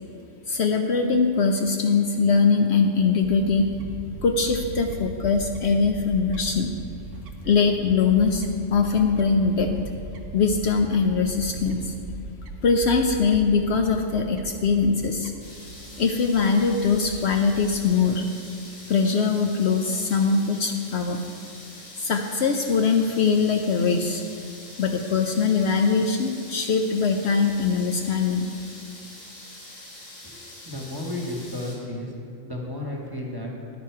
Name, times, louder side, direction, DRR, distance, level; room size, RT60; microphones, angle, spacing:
voice 1, 0.5-3.7 4.2-6.7 7.4-9.7 10.3-11.9 12.6-15.3 16.0-18.2 18.9-21.2 22.0-24.2 24.8-28.5, left 5 dB, 65° left, 4 dB, 0.8 m, -22 dB
Fowl / Bird, 3.2-17.9, right 3 dB, 75° right, 1.2 m, -39 dB
sound 1, 15.4-31.7, left 1 dB, 85° left, 2.6 m, -44 dB
voice 2, 30.2-32.1 32.4-33.5, left 1 dB, 20° right, -1 dB, 1.2 m, -33 dB
10.5 x 9.3 x 4.6 m, 2.7 s
omnidirectional pair, 1.3 m